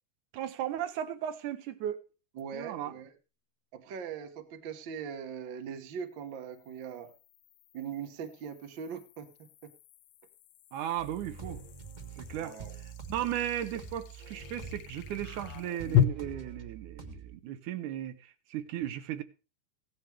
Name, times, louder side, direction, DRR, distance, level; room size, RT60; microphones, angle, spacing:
voice 1, 0.3-2.0 2.5-2.9 10.7-11.6 12.2-12.6 13.1-19.2, right 11 dB, 75° right, 2.4 m, -36 dB
sound 1, 2.4-2.5 5.9-16.0, left 12 dB, 80° left, 1.4 m, -36 dB
voice 2, 2.4-3.1 3.7-7.1 7.7-9.7 12.4-12.7, right 7 dB, 55° right, 1.4 m, -41 dB
sound 2, 11.0-17.4, right 5 dB, 25° right, 0.9 m, -45 dB
16.0 x 11.5 x 3.4 m
omnidirectional pair, 3.7 m